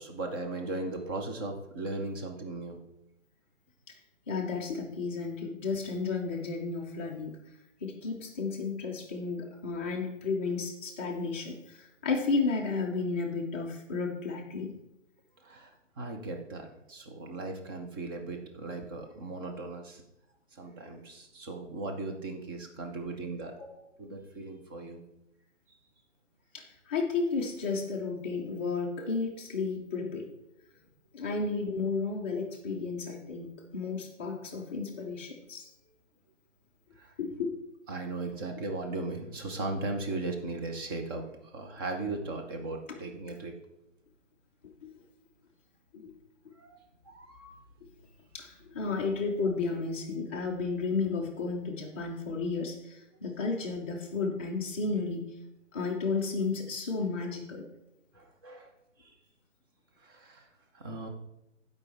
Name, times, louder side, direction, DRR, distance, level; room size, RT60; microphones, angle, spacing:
voice 1, 0.0-2.8 15.4-20.0 20.5-23.5 24.0-25.0 25.7-25.8 37.0-37.1 37.9-43.5 46.5-47.6 58.1-59.2 60.0-60.5 60.7-61.1, right 2 dB, 20° right, 3 dB, 0.8 m, -38 dB
voice 2, 4.3-7.3 7.8-14.7 26.5-30.3 31.1-35.7 37.2-37.5 44.8-44.9 45.9-46.1 48.3-55.2 55.7-57.7, left 4 dB, 10° left, -2 dB, 0.5 m, -33 dB
15.0 x 5.3 x 3.5 m, 0.87 s
figure-of-eight pair, 145°, 37 cm